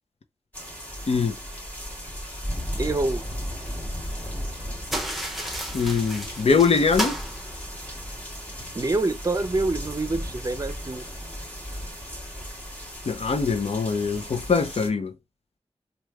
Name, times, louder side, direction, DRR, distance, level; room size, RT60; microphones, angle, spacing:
sound 1, 0.5-14.9, equal, 15° left, 1.6 m, -36 dB
voice 1, 2.8-3.3 8.7-11.1, right 2 dB, 35° right, 0.5 m, -26 dB
sound 2, 4.9-8.3, right 1 dB, ahead, 0.8 m, -33 dB
voice 2, 5.7-7.1 13.1-15.1, left 5 dB, 70° left, 0.6 m, -22 dB
3.0 x 2.3 x 3.4 m
wide cardioid pair, 75°, 11 cm